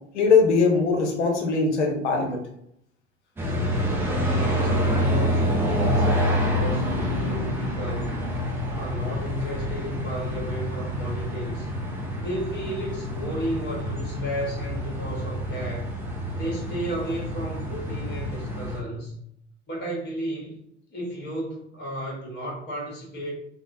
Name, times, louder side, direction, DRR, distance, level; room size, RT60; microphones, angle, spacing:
voice 1, 0.1-2.4, left 4 dB, 70° left, 3 dB, 0.7 m, -21 dB
sound 1, 3.4-18.8, equal, 5° right, 0.3 m, -27 dB
voice 2, 4.1-8.2 8.7-11.7 12.2-15.9 16.3-19.1 19.7-20.6 20.9-23.3, right 1 dB, 30° left, -3 dB, 1.2 m, -33 dB
3.1 x 2.0 x 2.5 m, 0.73 s
figure-of-eight pair, 70°, 37 cm